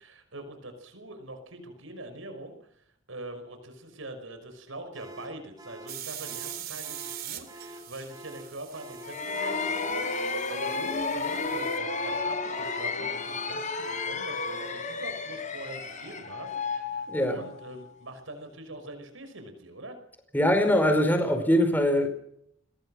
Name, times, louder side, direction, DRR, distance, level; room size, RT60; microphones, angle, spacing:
voice 1, 0.0-20.0, right 1 dB, 90° right, 7 dB, 5.6 m, -43 dB
sound 1, 4.9-14.9, equal, 20° right, 5.6 m, -47 dB
sound 2, 5.9-11.8, right 12 dB, 50° right, 3.2 m, -43 dB
sound 3, 9.0-17.7, left 4 dB, 40° left, 4.3 m, -32 dB
voice 2, 17.1-17.4 20.3-22.1, equal, 10° left, 7 dB, 5.1 m, -22 dB
27.0 x 21.0 x 6.5 m, 0.70 s
head